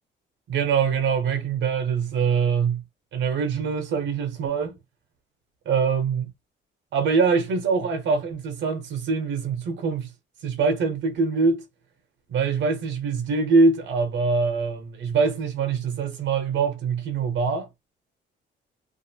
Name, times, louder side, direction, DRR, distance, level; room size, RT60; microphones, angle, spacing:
voice 1, 0.5-2.8 3.1-4.8 5.7-6.3 6.9-10.1 10.4-11.6 12.3-17.7, right 5 dB, 70° right, 0.7 m, -23 dB
2.4 x 2.4 x 2.7 m
cardioid pair, 90°, 20 cm